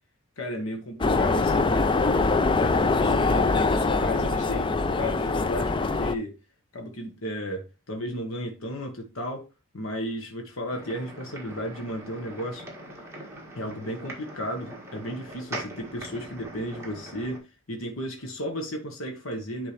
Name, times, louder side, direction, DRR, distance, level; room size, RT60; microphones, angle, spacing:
voice 1, 0.4-1.9 2.9-6.4 6.7-9.5 9.7-12.7 13.5-19.7, equal, 70° left, 1.3 m, -34 dB
sound 1, 1.0-6.1, left 3 dB, 25° left, 0.4 m, -23 dB
sound 2, 10.7-17.4, right 1 dB, 15° right, 1.7 m, -41 dB
10.0 x 3.7 x 3.3 m
head